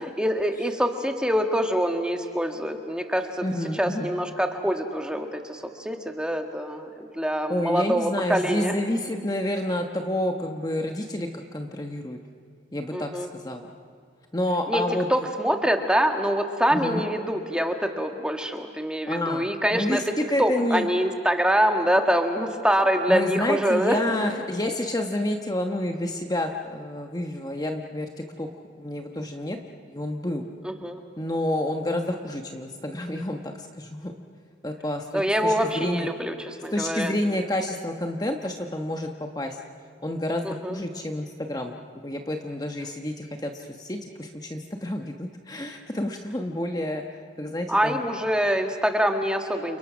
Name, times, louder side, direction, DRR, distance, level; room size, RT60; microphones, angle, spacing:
voice 1, 0.0-3.4 3.8-8.7 12.9-13.3 14.7-14.8 15.1-20.0 20.4-24.0 30.6-31.0 35.1-37.1 40.4-40.8 47.7-49.8, equal, 5° right, 4 dB, 1.6 m, -25 dB
voice 2, 3.4-4.1 7.5-12.2 12.7-13.7 14.3-15.1 16.7-17.0 19.1-20.9 23.1-28.1 28.4-28.5 28.8-29.6 29.9-30.4 31.2-34.1 34.6-36.1 36.7-39.6 40.0-47.0 47.4-48.0, left 1 dB, 20° left, 3 dB, 1.1 m, -29 dB
29.5 x 29.0 x 6.2 m, 2.3 s
head